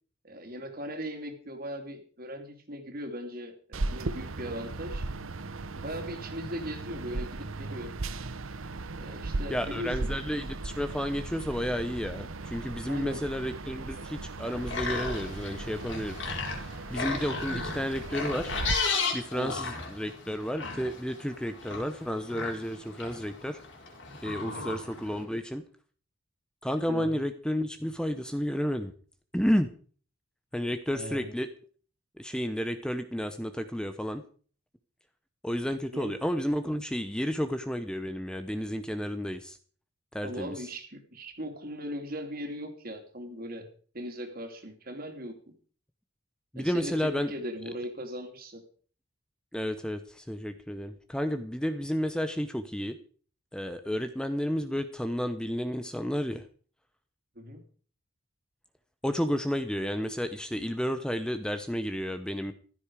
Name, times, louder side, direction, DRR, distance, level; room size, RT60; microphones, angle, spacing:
voice 1, 0.2-5.1 5.7-7.9 9.0-10.1 12.9-13.2 17.3-17.4 19.4-19.6 24.4-24.6 26.9-27.2 30.9-31.3 35.9-36.1 40.2-43.7 43.9-45.3 46.5-48.6 57.3-57.6, equal, 45° right, 6 dB, 3.1 m, -39 dB
sound 1, 3.7-18.8, right 2 dB, 85° right, 0.9 m, -37 dB
voice 2, 9.5-16.2 16.9-18.5 19.1-23.6 24.2-25.6 26.6-28.9 29.3-29.7 30.5-31.5 32.2-34.2 35.4-39.6 40.1-40.7 46.5-47.3 49.5-53.0 53.5-56.4 59.0-62.5, equal, 5° left, 9 dB, 0.8 m, -31 dB
sound 2, 14.4-25.2, left 4 dB, 60° left, 4.4 m, -35 dB
15.0 x 13.0 x 4.9 m, 0.42 s
head